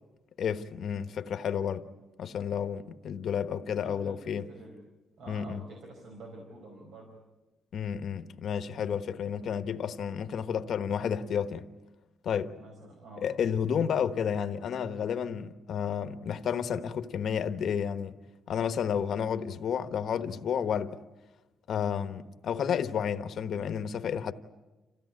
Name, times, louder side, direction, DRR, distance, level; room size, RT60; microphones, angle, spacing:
voice 1, 0.4-1.9 2.2-4.4 5.3-5.6 7.7-11.7 12.2-12.5 13.2-18.1 18.5-21.0 21.7-24.3, left 7 dB, 55° left, 1.1 m, -31 dB
voice 2, 3.8-4.8 5.2-7.2 12.6-13.3, right 2 dB, 75° right, 4.7 m, -48 dB
27.5 x 16.0 x 9.7 m
cardioid pair, 170°, 0 cm